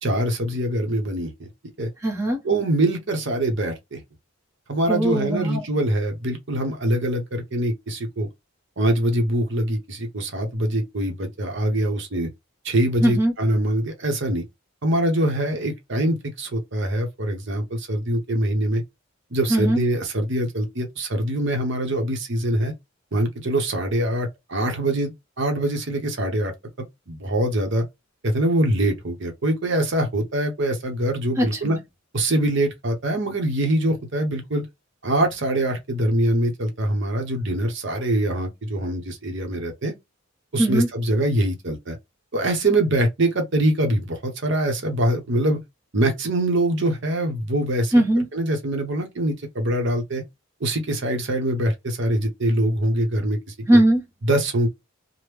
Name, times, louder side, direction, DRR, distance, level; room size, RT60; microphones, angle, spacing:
voice 1, 0.0-1.5 1.8-1.9 2.4-4.0 4.7-8.3 8.8-12.3 12.6-14.4 14.8-18.8 19.3-22.7 23.1-26.5 27.1-27.8 28.2-31.8 32.1-34.7 35.0-39.9 40.5-42.0 42.3-45.6 45.9-47.9 48.3-50.2 50.6-53.4 54.2-54.7, right 1 dB, 55° right, 0.8 m, -23 dB
voice 2, 2.0-2.4 4.9-5.6 13.0-13.3 19.5-19.8 31.4-31.8 40.6-40.9 47.9-48.2 53.7-54.0, right 1 dB, 15° right, 0.9 m, -19 dB
3.4 x 2.1 x 3.0 m
head